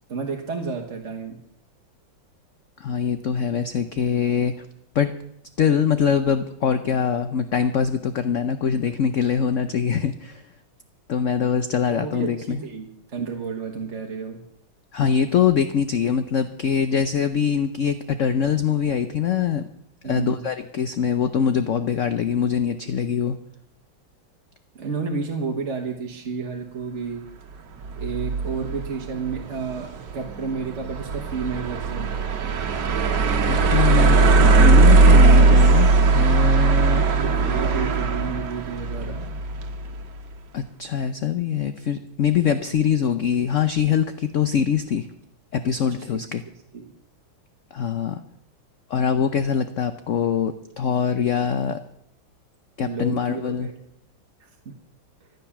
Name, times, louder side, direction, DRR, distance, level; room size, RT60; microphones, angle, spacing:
voice 1, 0.1-1.4 11.9-14.4 20.0-20.4 24.7-27.2 28.0-32.1 36.6-39.3 45.8-46.1 46.7-46.9 52.8-53.8 54.4-54.7, right 5 dB, 40° right, 2 dB, 1.5 m, -31 dB
voice 2, 2.8-4.7 4.9-5.1 5.6-10.4 11.1-12.6 14.9-19.6 20.0-23.4 33.5-37.0 40.5-45.1 45.5-46.4 47.7-48.2 48.9-51.8 52.8-53.7, left 7 dB, 65° left, 10 dB, 0.7 m, -23 dB
sound 1, 27.8-40.0, right 3 dB, 60° right, 1.9 m, -18 dB
14.5 x 11.0 x 7.2 m, 0.75 s
omnidirectional pair, 2.2 m